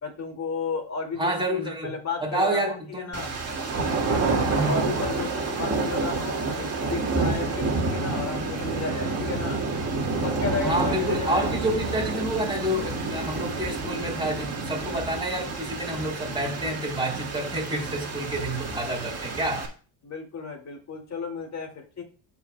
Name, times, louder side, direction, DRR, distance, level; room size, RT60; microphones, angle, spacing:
voice 1, 0.0-3.3 4.5-9.6 10.1-11.5 20.0-22.0, left 5 dB, 35° left, 2.3 m, -33 dB
voice 2, 1.2-1.9 2.2-3.1 4.5-4.9 10.6-19.7, right 1 dB, 10° right, 3.6 m, -28 dB
sound 1, 3.1-19.7, right 3 dB, 30° right, 1.8 m, -29 dB
13.5 x 5.0 x 2.3 m
supercardioid pair, 100°, 47 cm